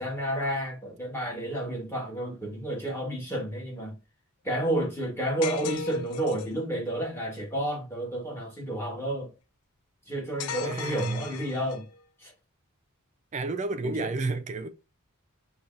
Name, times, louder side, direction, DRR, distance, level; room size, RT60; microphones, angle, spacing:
voice 1, 0.0-4.0 4.4-9.3 10.1-11.9 12.2-12.3 13.8-14.1, right 1 dB, 10° left, 1.1 m, -31 dB
sound 1, 5.4-6.6 10.4-12.0, left 5 dB, 85° left, 0.4 m, -36 dB
voice 2, 10.6-11.3 13.3-14.7, right 3 dB, 30° right, 0.3 m, -31 dB
5.3 x 2.3 x 2.4 m
head